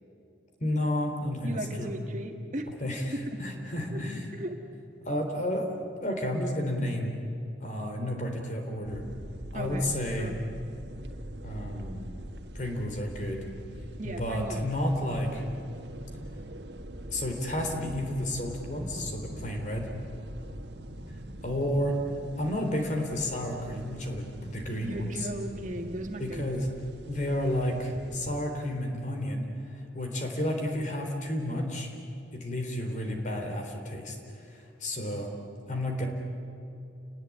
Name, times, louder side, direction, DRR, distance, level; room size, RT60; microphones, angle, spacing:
voice 1, 0.6-1.9 2.8-3.0 3.4-4.3 5.1-5.7 6.0-7.1 7.6-9.0 9.5-10.3 11.4-12.0 12.5-13.4 14.0-15.4 17.1-19.9 21.4-21.9 22.4-25.3 26.2-26.7 27.0-29.5 29.9-31.9 32.4-34.2 34.5-35.3 35.7-36.1, left 1 dB, 40° left, 3 dB, 3.9 m, -31 dB
voice 2, 1.4-2.7 3.1-3.4 3.9-4.0 4.3-4.6 9.5-10.4 14.0-14.7 24.8-26.6, right 1 dB, 40° right, 3 dB, 2.1 m, -36 dB
sound 1, 8.8-28.4, right 1 dB, 65° right, 1.6 m, -43 dB
30.0 x 19.0 x 9.8 m, 2.7 s
head